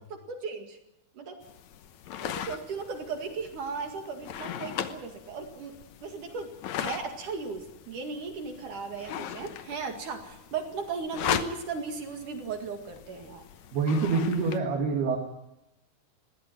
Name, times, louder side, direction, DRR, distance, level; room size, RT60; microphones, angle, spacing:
voice 1, 0.1-0.8 1.1-1.4 2.2-5.7 6.0-13.4, right 4 dB, 55° right, 4 dB, 3.3 m, -36 dB
sound 1, 1.4-14.6, left 10 dB, 75° left, 1.6 m, -39 dB
voice 2, 13.7-15.2, right 4 dB, 70° right, 1 dB, 4.1 m, -26 dB
20.5 x 16.5 x 9.3 m, 0.88 s
omnidirectional pair, 4.7 m